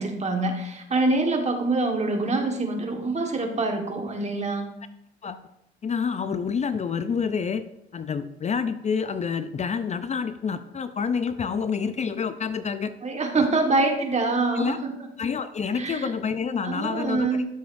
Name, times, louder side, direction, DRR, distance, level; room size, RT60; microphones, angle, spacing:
voice 1, 0.0-4.6 13.0-14.9 15.8-16.1 16.6-17.4, right 3 dB, 35° right, 3 dB, 1.4 m, -25 dB
voice 2, 5.8-7.6 7.9-12.9 13.8-13.9 14.5-14.8 15.2-17.4, left 6 dB, 35° left, 11 dB, 0.5 m, -28 dB
13.0 x 6.9 x 2.6 m, 0.82 s
cardioid pair, 90°, 20 cm